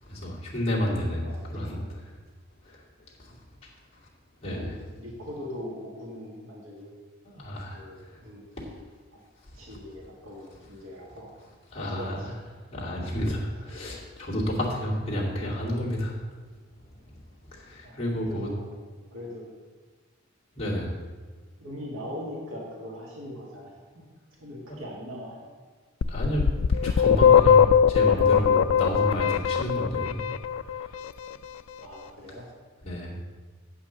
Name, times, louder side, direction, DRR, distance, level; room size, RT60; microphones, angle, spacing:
voice 1, 0.0-2.1 2.6-3.7 4.4-4.8 7.2-8.2 8.6-8.7 11.7-12.2 12.7-16.2 17.1-17.2 17.5-18.5 20.5-21.0 24.7-24.9 26.1-26.5 26.8-30.2 30.6-31.0 32.8-33.1, equal, 30° left, -7 dB, 2.4 m, -31 dB
voice 2, 1.2-1.9 4.4-7.0 7.7-8.8 9.1-9.2 9.5-11.3 11.8-12.4 13.6-13.7 17.8-18.7 19.1-19.5 21.6-24.1 24.4-25.5 31.8-32.5, left 1 dB, 85° right, -3 dB, 1.9 m, -41 dB
sound 1, 26.0-30.9, left 8 dB, 85° left, 0.4 m, -20 dB
8.5 x 5.7 x 6.9 m, 1.4 s
head